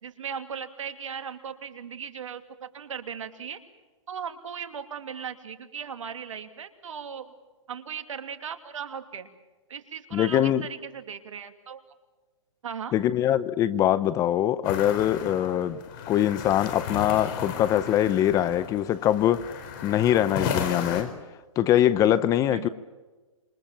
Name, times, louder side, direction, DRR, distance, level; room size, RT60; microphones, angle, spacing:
voice 1, 0.0-3.6 4.1-7.3 7.7-9.3 9.7-11.8 12.6-12.9 22.5-22.7, right 7 dB, 70° right, 2.8 m, -37 dB
voice 2, 10.1-10.6 12.9-15.8 16.1-19.4 19.8-21.1 21.6-22.7, left 11 dB, 20° left, 0.8 m, -23 dB
sound 1, 14.6-21.0, left 7 dB, 40° left, 4.4 m, -34 dB
27.0 x 24.5 x 7.5 m
hypercardioid pair, 140°, 17 cm